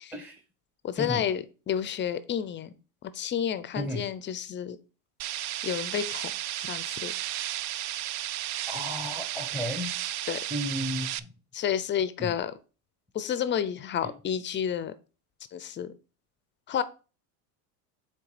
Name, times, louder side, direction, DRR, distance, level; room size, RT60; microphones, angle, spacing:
voice 1, 0.8-2.7 3.0-4.8 5.6-6.3 6.6-7.1 10.3-10.4 11.5-12.5 13.1-14.9 15.5-15.9 16.7-16.8, left 9 dB, 25° left, 0.5 m, -30 dB
voice 2, 3.8-4.1 8.7-9.9 10.5-11.3 12.2-12.3 14.0-14.1, left 1 dB, 5° right, 0.8 m, -33 dB
sound 1, 5.2-11.2, right 14 dB, 50° right, 0.4 m, -33 dB
8.0 x 3.3 x 4.9 m
supercardioid pair, 120°, 48 cm